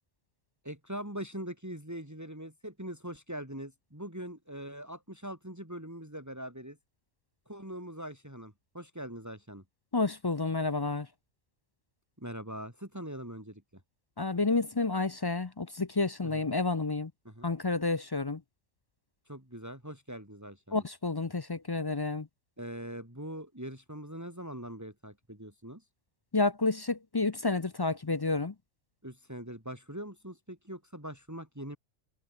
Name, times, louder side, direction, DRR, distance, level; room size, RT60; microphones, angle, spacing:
voice 1, 0.6-6.8 7.5-9.6 12.2-13.8 16.3-16.5 17.2-17.5 19.2-20.8 22.6-25.9 29.0-31.8, right 1 dB, 15° right, 4.6 m, -42 dB
voice 2, 9.9-11.1 14.2-17.1 17.4-18.4 20.7-22.3 26.3-28.5, left 3 dB, 30° left, 0.5 m, -30 dB
omnidirectional pair, 1.3 m